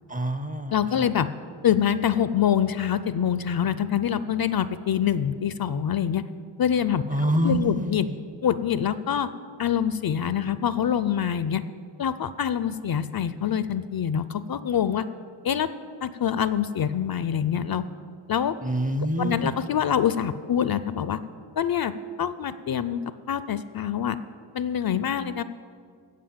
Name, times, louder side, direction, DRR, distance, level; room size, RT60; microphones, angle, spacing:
voice 1, 0.1-1.0 7.1-8.1 18.6-19.5, right 1 dB, 15° right, 10 dB, 0.5 m, -26 dB
voice 2, 0.7-1.3 1.6-6.2 6.6-7.0 7.4-8.1 8.4-9.3 9.6-11.6 12.0-15.1 15.4-15.7 16.0-17.8 18.3-18.5 19.2-21.2 21.6-21.9 22.2-23.0 23.3-24.2 24.5-25.4, left 9 dB, 50° left, 14 dB, 0.5 m, -25 dB
15.0 x 5.2 x 8.7 m, 2.1 s
wide cardioid pair, 105°, 47 cm